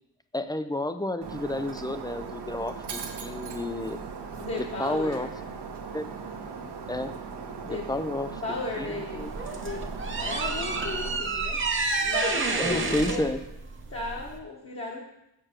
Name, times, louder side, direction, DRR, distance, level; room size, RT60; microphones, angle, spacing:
voice 1, 0.3-4.0 4.6-5.3 5.9-6.1 6.9-7.1 7.7-8.4 8.8-8.9 9.1-9.3 12.6-13.4, left 1 dB, 10° left, 10 dB, 0.3 m, -30 dB
Shatter, 1.2-11.2, right 5 dB, 70° right, 1.2 m, -39 dB
voice 2, 4.4-5.3 7.6-7.9 8.4-11.6 12.0-13.3 13.9-15.0, left 3 dB, 35° left, -3 dB, 1.3 m, -35 dB
sound 1, 9.2-14.4, right 3 dB, 30° right, 0.8 m, -29 dB
7.3 x 6.7 x 6.5 m, 0.87 s
wide cardioid pair, 180°, 42 cm